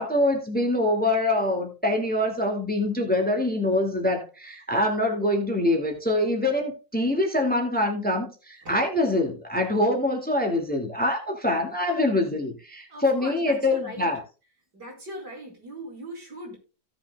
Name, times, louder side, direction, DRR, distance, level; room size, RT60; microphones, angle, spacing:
voice 1, 0.0-14.2, left 1 dB, 5° left, 3 dB, 2.2 m, -24 dB
voice 2, 12.9-14.1 14.7-16.6, right 1 dB, 75° right, 0 dB, 5.7 m, -40 dB
16.5 x 7.4 x 2.4 m, 0.33 s
omnidirectional pair, 1.8 m